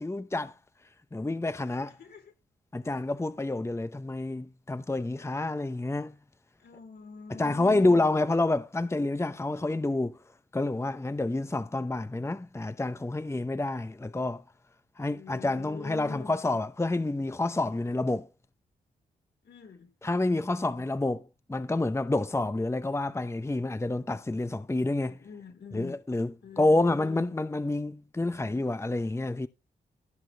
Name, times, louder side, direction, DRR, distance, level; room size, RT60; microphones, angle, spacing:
voice 1, 0.0-0.5 1.1-1.9 2.7-6.1 7.3-10.2 10.5-14.4 15.0-18.3 20.0-25.2 25.7-29.5, left 2 dB, 15° left, 0.8 m, -28 dB
voice 2, 1.7-2.3 6.6-8.0 15.0-16.4 19.4-19.9 24.9-26.0 26.4-27.4, left 6 dB, 70° left, 4.2 m, -45 dB
15.5 x 6.3 x 3.4 m
supercardioid pair, 40°, 18 cm